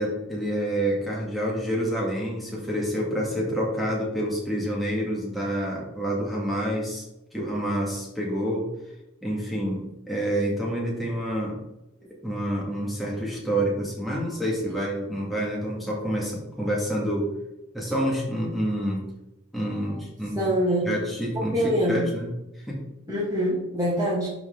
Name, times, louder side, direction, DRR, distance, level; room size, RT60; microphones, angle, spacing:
voice 1, 0.0-7.0 7.3-8.7 9.2-11.6 12.2-17.3 17.7-19.1 19.5-20.4 20.8-22.8, equal, ahead, -4 dB, 2.5 m, -28 dB
voice 2, 20.4-20.9 21.5-22.0 23.1-24.3, equal, 15° right, -9 dB, 2.5 m, -24 dB
12.0 x 4.9 x 3.9 m, 0.92 s
head